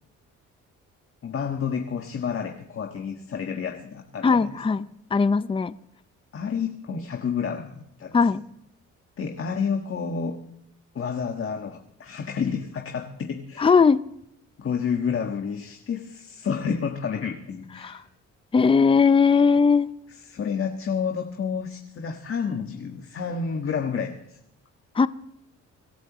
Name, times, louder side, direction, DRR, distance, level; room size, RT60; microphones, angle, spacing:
voice 1, 1.2-4.8 6.3-8.2 9.2-10.4 10.9-13.7 14.6-18.1 20.3-24.4, left 6 dB, 45° left, 1.5 m, -30 dB
voice 2, 4.2-4.9 5.1-5.7 8.1-8.4 13.6-14.0 17.8-18.0 18.5-19.9 24.9-25.1, left 5 dB, 20° left, 0.6 m, -19 dB
25.5 x 12.5 x 3.1 m
cardioid pair, 90°, 30 cm